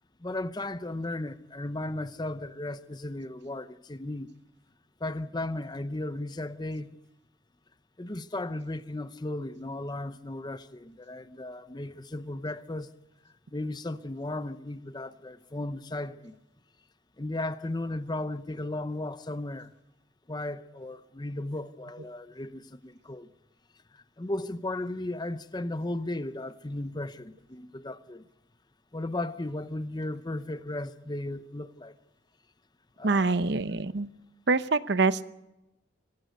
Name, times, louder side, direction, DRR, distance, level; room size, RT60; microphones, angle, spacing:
voice 1, 0.2-4.3 5.0-7.0 8.0-12.9 13.2-16.3 17.2-19.7 20.3-23.3 23.9-28.2 28.9-31.9 33.0-33.4, left 2 dB, 20° left, 0.7 m, -35 dB
voice 2, 33.0-34.1 34.5-35.3, right 3 dB, 60° right, 0.8 m, -25 dB
25.0 x 15.5 x 8.0 m
head